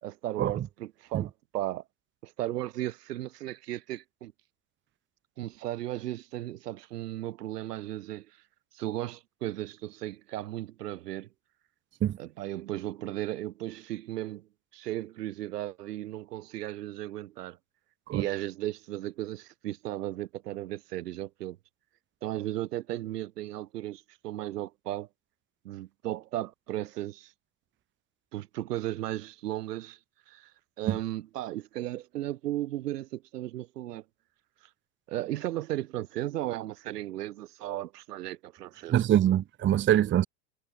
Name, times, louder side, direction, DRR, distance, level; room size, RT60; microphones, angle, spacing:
voice 1, 0.0-1.8 2.2-4.3 5.4-8.3 8.7-11.3 12.2-17.6 18.1-21.6 22.2-25.1 25.6-27.3 28.3-30.0 30.3-30.5 30.8-34.0 35.1-39.0, right 14 dB, 75° right, 2.2 m, -35 dB
voice 2, 38.9-40.3, right 11 dB, 25° right, 0.9 m, -24 dB
hypercardioid pair, 100°, 48 cm